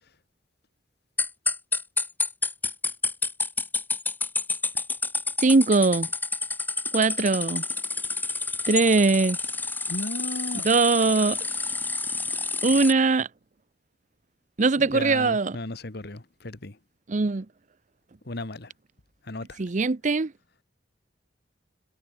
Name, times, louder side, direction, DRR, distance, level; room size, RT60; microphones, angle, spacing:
sound 1, 1.2-12.9, left 3 dB, 10° left, 1.3 m, -29 dB
voice 1, 5.4-6.1 6.9-7.6 8.7-9.4 10.6-11.4 12.6-13.3 14.6-15.6 17.1-17.5 19.6-20.3, right 3 dB, 40° right, 0.6 m, -21 dB
voice 2, 9.9-10.7 14.8-16.8 18.2-18.7 19.2-19.6, left 2 dB, 60° left, 1.7 m, -35 dB
head